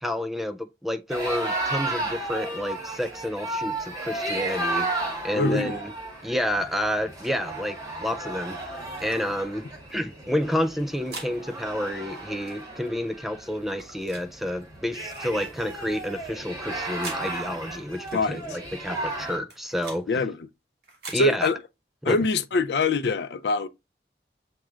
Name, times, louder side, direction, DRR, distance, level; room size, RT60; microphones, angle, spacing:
voice 1, 0.0-5.9 6.2-20.2 21.1-21.5 22.0-22.2, equal, ahead, 0.3 m, -30 dB
sound 1, 1.1-19.4, right 2 dB, 20° right, 1.4 m, -34 dB
voice 2, 5.3-5.8 18.1-18.4 20.1-20.5 21.1-21.6 22.0-23.7, left 3 dB, 75° left, 0.4 m, -24 dB
sound 2, 9.0-9.2 10.5-11.3 12.4-12.6 13.7-14.3 15.1-15.3 16.5-17.2 18.1-18.3 19.2-20.0 20.8-21.2, right 3 dB, 70° right, 1.7 m, -42 dB
7.4 x 3.0 x 2.3 m
head